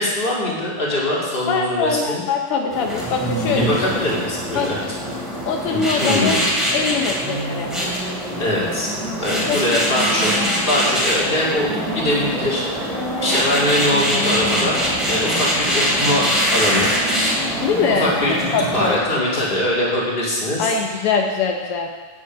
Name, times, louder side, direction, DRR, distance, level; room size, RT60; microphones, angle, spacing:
voice 1, 0.0-2.2 3.6-4.8 5.6-6.4 8.4-14.8 15.1-16.9 17.9-18.3 18.7-20.7, left 1 dB, 20° left, -5 dB, 2.1 m, -22 dB
voice 2, 1.5-3.8 4.5-4.9 5.5-6.4 6.7-7.7 9.5-9.9 17.6-19.0 20.6-21.9, left 5 dB, 90° left, 3 dB, 1.2 m, -22 dB
sound 1, 2.7-19.0, equal, ahead, 2.2 m, -23 dB
10.0 x 7.4 x 6.0 m, 1.4 s
omnidirectional pair, 3.5 m